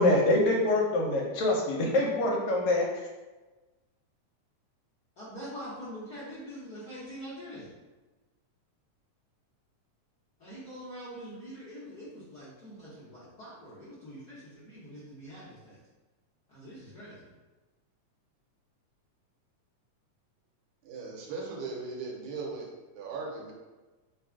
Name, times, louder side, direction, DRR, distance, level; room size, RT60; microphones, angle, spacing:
voice 1, 0.0-3.1, left 2 dB, 75° left, -1 dB, 1.8 m, -25 dB
voice 2, 5.2-7.7 10.4-15.8 16.5-17.3, equal, 60° left, -11 dB, 1.0 m, -44 dB
voice 3, 20.8-22.7 22.9-23.5, right 4 dB, 75° right, -1 dB, 2.2 m, -38 dB
4.6 x 2.4 x 4.5 m, 1.2 s
omnidirectional pair, 3.4 m